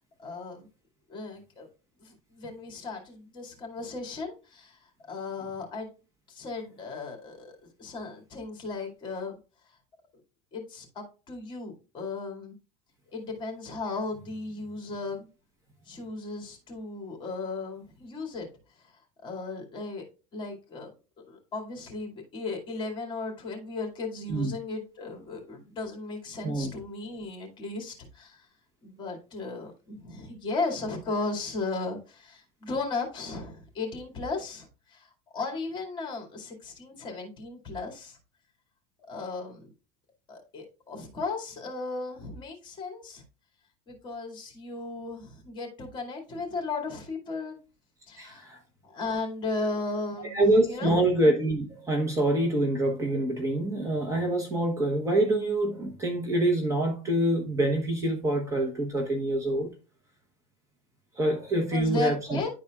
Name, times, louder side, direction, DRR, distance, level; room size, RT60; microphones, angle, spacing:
voice 1, 0.2-0.7 1.1-1.7 2.0-5.9 6.3-9.4 9.6-9.8 10.5-12.6 13.1-15.3 15.9-18.5 18.8-20.1 20.3-20.9 21.3-28.5 28.8-38.2 39.1-39.7 40.3-43.2 43.9-47.6 48.1-48.5 48.8-51.0 61.7-62.5, left 3 dB, 30° left, 2.3 m, -36 dB
voice 2, 48.2-48.6 50.3-59.7 61.1-62.4, right 1 dB, 20° right, 1.1 m, -26 dB
11.5 x 4.3 x 2.4 m
supercardioid pair, 140°, 17 cm